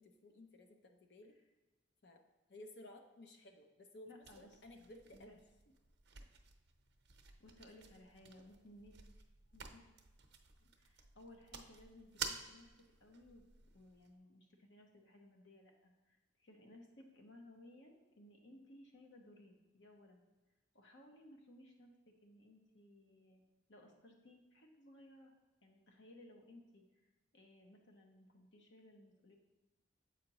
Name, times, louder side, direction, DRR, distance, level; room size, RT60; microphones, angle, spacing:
voice 1, 0.0-1.3 2.0-2.2 2.5-5.4 5.7-5.8, left 1 dB, 65° left, 5 dB, 0.7 m, -57 dB
voice 2, 4.0-4.5 5.1-5.4 7.4-9.0 9.5-9.9 10.6-13.4 13.7-20.2 20.7-23.4 23.7-25.3 25.6-26.8 27.3-29.3, left 1 dB, 80° left, 2 dB, 1.0 m, -60 dB
sound 1, 4.2-14.1, right 6 dB, 65° right, 0.7 m, -52 dB
7.4 x 5.1 x 2.9 m, 1.1 s
head